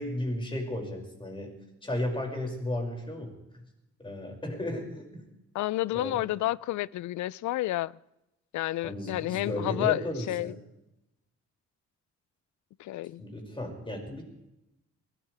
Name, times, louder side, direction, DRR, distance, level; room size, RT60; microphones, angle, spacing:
voice 1, 0.0-3.6 4.0-5.2 5.9-6.2 8.8-10.6 13.2-14.2, left 1 dB, 15° left, 0 dB, 6.0 m, -34 dB
voice 2, 5.5-7.9 8.5-10.0 10.3-10.5 12.8-13.2, left 16 dB, 70° left, 23 dB, 0.5 m, -30 dB
23.0 x 17.5 x 3.4 m, 0.90 s
cardioid pair, 90°, 30 cm